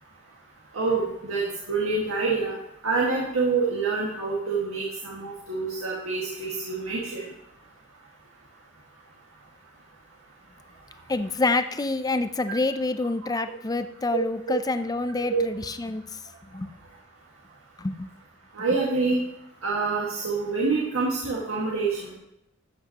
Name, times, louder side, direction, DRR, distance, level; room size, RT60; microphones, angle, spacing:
voice 1, 0.7-2.6 2.8-7.2 15.3-15.4 18.5-19.2 19.6-22.1, right 4 dB, 80° right, -4 dB, 1.9 m, -26 dB
voice 2, 11.1-16.0 16.5-16.7 17.8-18.1, left 2 dB, 20° left, 10 dB, 0.5 m, -27 dB
13.0 x 8.2 x 2.9 m, 0.79 s
head